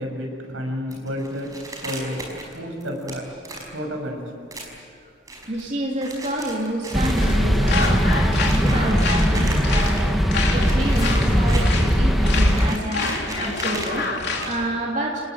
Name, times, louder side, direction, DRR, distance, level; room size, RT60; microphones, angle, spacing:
voice 1, 0.0-4.3, equal, 80° right, 2 dB, 6.7 m, -31 dB
sound 1, 0.9-3.7 4.5-4.8 5.3-5.6 6.0-10.1 10.4-14.5, right 2 dB, 20° right, 5.0 m, -36 dB
voice 2, 5.4-10.1 10.5-13.1 13.4-15.2, right 1 dB, 40° right, -2 dB, 3.2 m, -28 dB
sound 2, 6.9-12.8, equal, ahead, 1.1 m, -19 dB
sound 3, 7.2-14.7, left 4 dB, 55° left, 3.6 m, -29 dB
29.0 x 20.0 x 7.9 m, 2.5 s
head